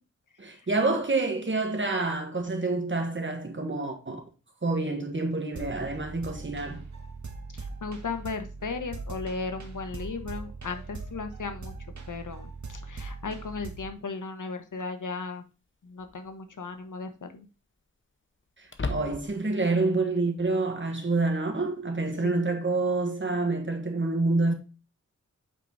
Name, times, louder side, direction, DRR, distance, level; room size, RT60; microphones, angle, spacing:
voice 1, 0.4-4.2 4.6-6.8 18.9-24.5, right 3 dB, 40° right, 1.6 m, -27 dB
sound 1, 5.5-13.9, right 4 dB, 70° right, 1.2 m, -40 dB
voice 2, 7.5-11.7 12.1-15.4 15.8-17.5 22.2-22.5, left 4 dB, 85° left, 1.1 m, -36 dB
sound 2, 14.1-14.2 16.0-16.4 16.8-16.9 18.7-19.6, left 3 dB, 40° left, 0.9 m, -35 dB
8.2 x 4.6 x 4.0 m
wide cardioid pair, 70°, 30 cm